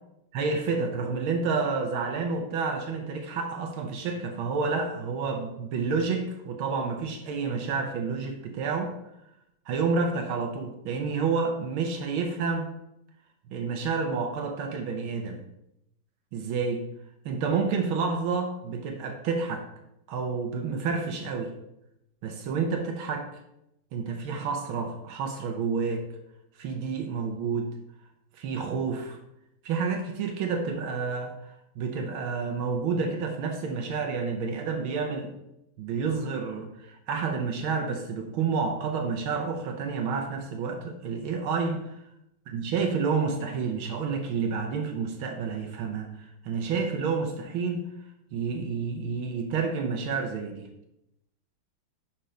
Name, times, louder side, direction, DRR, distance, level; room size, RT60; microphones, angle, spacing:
voice 1, 0.3-8.9 9.7-12.7 13.5-15.4 16.3-16.8 17.3-19.6 20.1-21.5 22.2-23.3 23.9-26.0 26.6-27.7 28.4-29.2 29.7-35.3 35.8-41.9 42.5-47.9 48.3-50.7, right 5 dB, 80° right, 4 dB, 1.6 m, -29 dB
5.6 x 4.4 x 5.0 m, 0.84 s
omnidirectional pair, 2.3 m